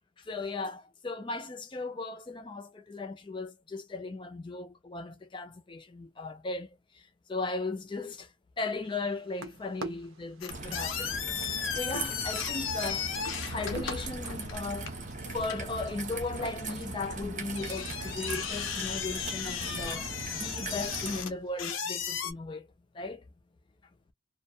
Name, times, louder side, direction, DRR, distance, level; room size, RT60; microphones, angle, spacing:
voice 1, 0.2-8.3 8.6-11.2 11.7-13.1 13.5-14.9 15.3-22.7 22.9-23.2, left 3 dB, 25° left, 0.4 m, -37 dB
sound 1, 8.8-14.4, right 4 dB, 75° right, 0.6 m, -46 dB
sound 2, 10.4-22.3, left 7 dB, 75° left, 0.6 m, -36 dB
Raindrop / Trickle dribble, 10.5-21.2, right 3 dB, 35° right, 0.6 m, -39 dB
2.3 x 2.1 x 2.5 m
head